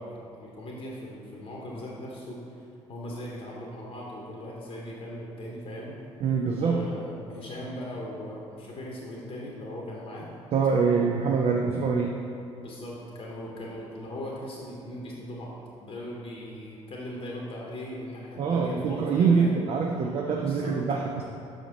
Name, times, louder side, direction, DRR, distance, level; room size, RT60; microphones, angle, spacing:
voice 1, 0.0-2.4 2.9-5.9 6.5-10.3 10.7-10.8 12.6-19.5 20.4-20.8, left 1 dB, 40° left, -3 dB, 1.0 m, -39 dB
voice 2, 6.2-6.8 10.5-12.1 18.4-21.2, right 5 dB, 40° right, 1 dB, 0.5 m, -24 dB
5.9 x 5.1 x 3.8 m, 2.7 s
figure-of-eight pair, 50°, 15 cm